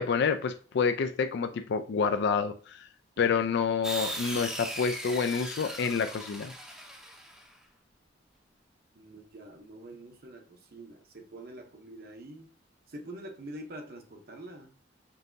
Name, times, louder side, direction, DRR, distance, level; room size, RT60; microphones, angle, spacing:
voice 1, 0.0-2.9 3.2-6.5, left 5 dB, 65° left, 0.4 m, -28 dB
sound 1, 3.8-7.5, right 1 dB, 5° right, 0.6 m, -38 dB
voice 2, 8.9-12.5 12.9-14.8, right 1 dB, 55° right, 0.8 m, -45 dB
5.3 x 2.7 x 2.6 m
head